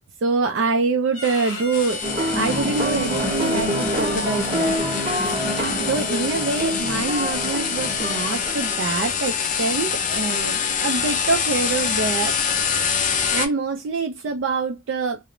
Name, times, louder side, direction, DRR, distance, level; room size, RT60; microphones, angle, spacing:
voice 1, 0.2-2.0 2.3-5.1 5.8-12.3 13.3-15.2, right 4 dB, 60° right, 0.3 m, -25 dB
Bowed string instrument, 1.1-8.4, left 3 dB, 70° left, 0.8 m, -37 dB
sound 1, 1.7-13.5, left 7 dB, 40° left, 0.4 m, -26 dB
sound 2, 2.0-9.1, equal, 30° right, 0.7 m, -26 dB
2.4 x 2.0 x 2.8 m
head